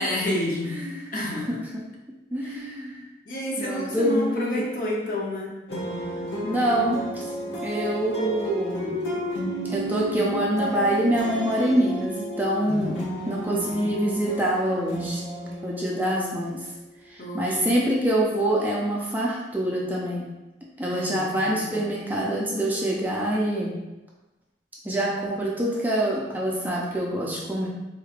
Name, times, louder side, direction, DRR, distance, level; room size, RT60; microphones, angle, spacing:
voice 1, 0.0-0.8 1.1-1.6 2.4-2.6 3.2-5.6 13.5-13.9 17.2-17.8 20.9-21.8, left 1 dB, 50° left, -3 dB, 0.8 m, -30 dB
voice 2, 2.3-3.0 3.6-4.6 6.4-7.2 7.6-9.0 9.6-13.0 13.3-15.2 15.6-16.6 17.1-20.3 20.8-23.7 24.8-27.7, right 1 dB, 10° right, -4 dB, 0.5 m, -25 dB
sound 1, 5.7-16.9, equal, 85° left, 1.1 m, -32 dB
4.2 x 3.1 x 2.4 m, 1.0 s
head